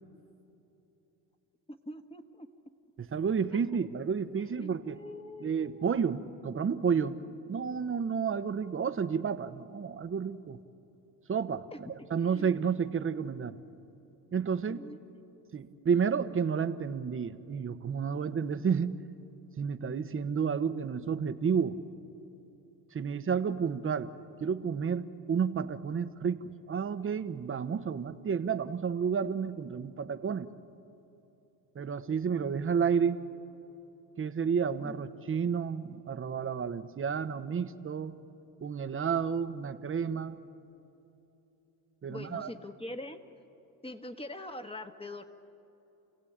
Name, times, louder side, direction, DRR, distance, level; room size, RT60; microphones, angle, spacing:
voice 1, 1.7-2.5 3.5-3.6 4.4-5.9 11.7-11.8 12.2-12.5 14.7-15.0 34.8-35.0 42.1-43.2 43.8-45.2, left 1 dB, 15° left, 7 dB, 1.5 m, -43 dB
voice 2, 3.0-5.0 5.4-7.2 7.5-10.6 11.3-13.6 14.3-14.8 15.5-19.0 19.6-21.8 22.9-24.1 24.4-30.5 31.7-33.2 34.2-38.2 38.6-40.4 42.0-42.5, right 6 dB, 30° right, 11 dB, 1.0 m, -31 dB
29.0 x 16.5 x 8.8 m, 3.0 s
cardioid pair, 100°, 42 cm